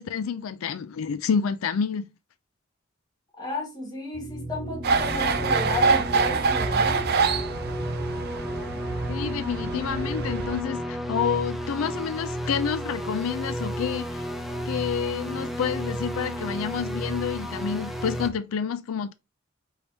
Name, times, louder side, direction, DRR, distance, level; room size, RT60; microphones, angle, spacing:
voice 1, 0.0-2.1 9.1-14.2 14.7-19.1, left 7 dB, 85° left, 0.4 m, -29 dB
voice 2, 3.4-7.0, left 2 dB, 20° left, 1.5 m, -33 dB
sound 1, 4.1-18.3, equal, ahead, 0.5 m, -32 dB
sound 2, 4.8-10.6, right 4 dB, 50° right, 0.5 m, -26 dB
4.6 x 3.3 x 2.7 m
head